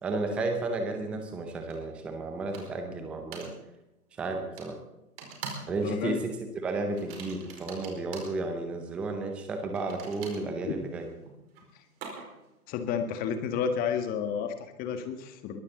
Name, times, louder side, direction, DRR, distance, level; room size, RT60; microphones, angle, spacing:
voice 1, 0.0-3.5 4.2-4.8 5.7-6.3 6.6-11.1, right 3 dB, 5° right, 5 dB, 0.6 m, -32 dB
sound 1, 1.7-1.8 2.5-2.9 3.3-3.5 4.6-4.7 5.2-5.8 6.0-6.3 6.9-8.4 9.7-12.5, right 5 dB, 40° right, 4.8 m, -43 dB
voice 2, 5.7-6.2 10.6-10.8 12.7-15.6, left 7 dB, 20° left, 8 dB, 1.5 m, -31 dB
22.5 x 15.0 x 3.9 m, 0.92 s
figure-of-eight pair, 130°, 46 cm